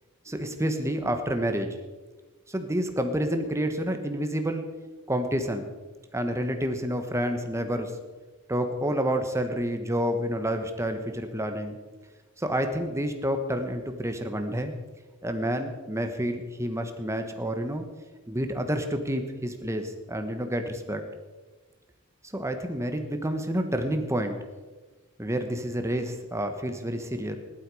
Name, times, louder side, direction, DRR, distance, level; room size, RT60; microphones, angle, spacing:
voice 1, 0.2-1.8 2.5-4.7 5.1-5.7 6.1-7.9 8.5-11.8 12.4-14.7 15.2-17.8 18.3-21.0 22.3-24.4 25.2-27.4, equal, 15° right, 6 dB, 1.2 m, -29 dB
16.5 x 11.5 x 4.9 m, 1.3 s
head